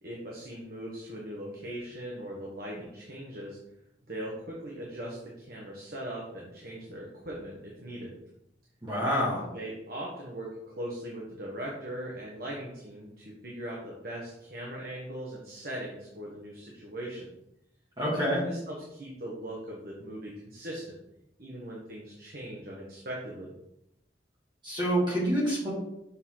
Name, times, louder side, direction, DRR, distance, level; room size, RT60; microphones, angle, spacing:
voice 1, 0.0-3.6 4.1-8.1 9.5-17.3 18.4-20.9 21.4-23.5, right 1 dB, 55° right, -3 dB, 1.2 m, -40 dB
voice 2, 8.8-9.4 18.0-18.4 24.6-25.7, equal, 25° right, -6 dB, 2.1 m, -27 dB
7.0 x 4.4 x 3.8 m, 0.84 s
head